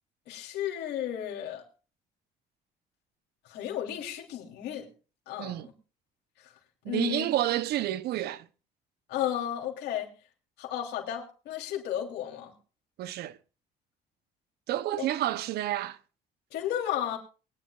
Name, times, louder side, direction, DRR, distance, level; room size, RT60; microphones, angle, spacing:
voice 1, 0.3-1.6 3.4-4.9 5.3-5.6 6.4-6.5 6.9-7.2 9.1-10.1 10.6-12.5 16.5-17.2, left 11 dB, 80° left, 3.1 m, -33 dB
voice 2, 6.8-8.5 13.0-13.4 14.7-16.0, right 13 dB, 70° right, 0.7 m, -29 dB
23.5 x 10.0 x 2.4 m
cardioid pair, 110°, 17 cm